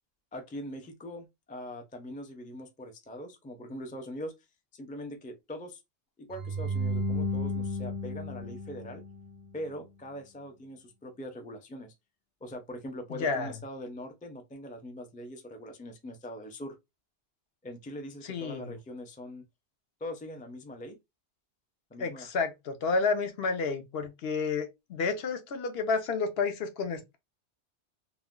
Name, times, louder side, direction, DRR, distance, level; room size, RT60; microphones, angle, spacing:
voice 1, 0.3-4.3 4.7-5.8 6.2-9.0 9.5-11.9 12.4-16.8 17.6-19.4 20.0-21.0 21.9-22.3, equal, 15° left, 0.3 m, -42 dB
sound 1, 6.3-9.5, left 1 dB, 45° right, 0.5 m, -33 dB
voice 2, 13.2-13.5 18.2-18.7 22.0-27.2, left 4 dB, 65° left, 0.8 m, -30 dB
2.5 x 2.3 x 3.6 m
omnidirectional pair, 1.2 m